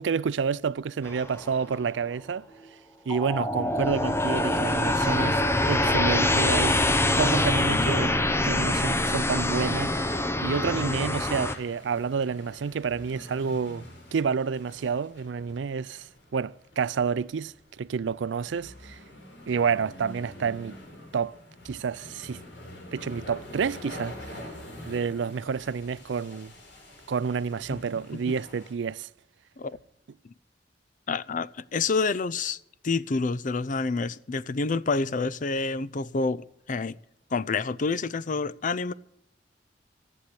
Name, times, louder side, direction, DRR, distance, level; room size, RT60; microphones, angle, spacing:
voice 1, 0.0-2.5 3.1-6.8 7.2-10.1 10.4-13.8 14.1-16.1 16.3-19.0 19.5-20.8 21.1-21.4 21.6-22.4 22.9-24.3 24.8-26.5 27.1-29.1, right 6 dB, 85° right, 0.4 m, -29 dB
sound 1, 1.0-1.8 2.7-2.8 3.1-11.6, left 1 dB, 15° left, 0.8 m, -25 dB
sound 2, 9.4-28.7, left 1 dB, 90° left, 6.7 m, -46 dB
voice 2, 31.1-32.6 32.8-37.0 37.3-38.9, left 4 dB, 45° left, 0.5 m, -28 dB
14.5 x 7.9 x 8.4 m
head